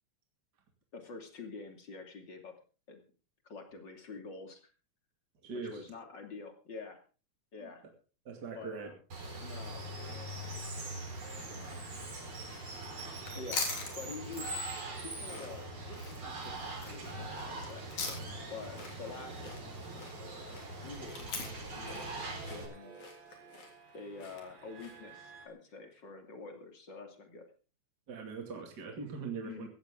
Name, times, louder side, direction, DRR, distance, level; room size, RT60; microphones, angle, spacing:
voice 1, 0.9-2.5 2.9-3.0 3.4-4.7 5.5-7.0 7.5-7.9 8.5-9.0 9.4-9.9 11.5-11.9 13.3-13.7 14.0-14.5 15.0-17.9 18.5-19.5 20.8-21.4 21.7-22.9 23.9-27.5 29.4-29.7, left 4 dB, 40° left, 5 dB, 3.1 m, -47 dB
voice 2, 5.4-5.8 8.3-8.9 28.1-29.7, right 5 dB, 35° right, 3 dB, 2.8 m, -41 dB
Water, 9.1-22.7, right 2 dB, 55° right, 5.4 m, -42 dB
sound 1, 12.9-25.1, left 4 dB, 85° left, 4.8 m, -43 dB
sound 2, 13.9-25.5, right 4 dB, 80° right, 4.7 m, -56 dB
17.0 x 15.0 x 3.8 m, 0.35 s
omnidirectional pair, 3.3 m